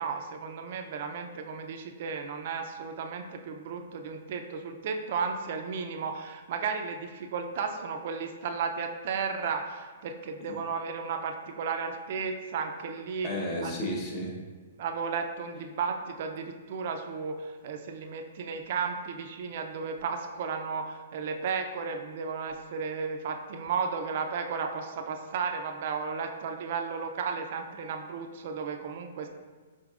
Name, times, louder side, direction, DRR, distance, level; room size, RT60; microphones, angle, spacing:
voice 1, 0.0-13.3 13.6-13.7 14.8-29.3, right 5 dB, 55° right, 5 dB, 0.4 m, -34 dB
voice 2, 13.2-14.4, left 1 dB, 35° left, -1 dB, 0.9 m, -33 dB
5.1 x 3.9 x 2.4 m, 1.4 s
hypercardioid pair, 130°, 0 cm